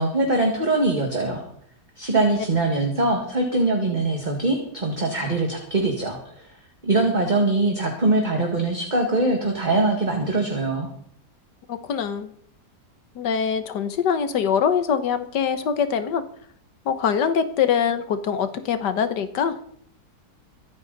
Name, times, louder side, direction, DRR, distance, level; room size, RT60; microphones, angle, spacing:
voice 1, 0.0-1.4 2.0-6.5 6.8-10.9, right 2 dB, 25° right, 2 dB, 1.9 m, -22 dB
voice 2, 11.7-12.3 13.1-16.2 16.9-19.6, left 7 dB, 90° left, 10 dB, 1.7 m, -23 dB
24.5 x 8.7 x 4.0 m, 0.64 s
omnidirectional pair, 1.8 m